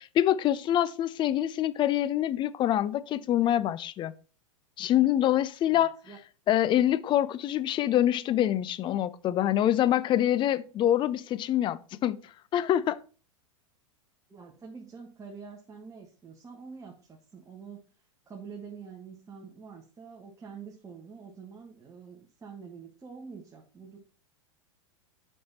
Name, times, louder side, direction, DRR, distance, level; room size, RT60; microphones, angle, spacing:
voice 1, 0.0-4.1 4.8-5.9 6.5-12.2 12.5-13.0, left 12 dB, 30° left, 0.5 m, -25 dB
voice 2, 5.6-6.2 14.3-17.9 18.3-24.0, right 5 dB, 20° right, 1.5 m, -46 dB
7.6 x 5.4 x 4.2 m
hypercardioid pair, 110°, 17 cm